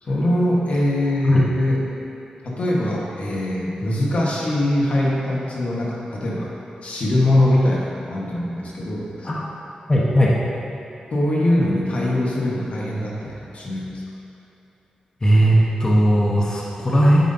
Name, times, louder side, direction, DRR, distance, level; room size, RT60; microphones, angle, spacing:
voice 1, 0.0-1.8 2.4-6.5 6.8-9.3 11.1-14.0, left 1 dB, 65° left, -4 dB, 1.2 m, -22 dB
voice 2, 9.9-10.4 15.2-17.2, equal, 30° left, -5 dB, 1.0 m, -17 dB
9.1 x 5.3 x 2.7 m, 3.0 s
cardioid pair, 60°, 2 cm